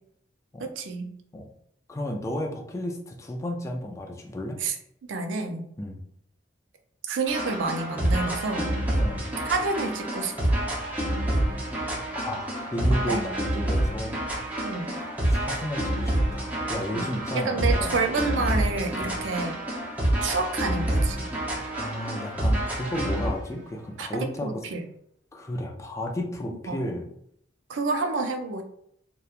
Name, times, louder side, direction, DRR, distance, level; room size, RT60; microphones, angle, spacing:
voice 1, 0.6-1.1 4.6-4.7 5.1-5.6 7.1-8.7 9.5-10.6 12.9-13.2 14.6-14.9 16.9-19.6 20.2-21.2 24.0-24.9 26.7-26.8 27.7-28.6, right 3 dB, 80° right, 5 dB, 0.4 m, -29 dB
voice 2, 1.9-4.6 5.8-6.0 9.0-9.2 12.1-14.2 14.9-18.0 19.0-19.1 21.8-24.7 25.3-27.1, left 1 dB, 15° left, 1 dB, 0.3 m, -33 dB
sound 1, 7.3-23.4, right 1 dB, 10° right, 0.7 m, -27 dB
2.9 x 2.2 x 2.4 m, 0.69 s
head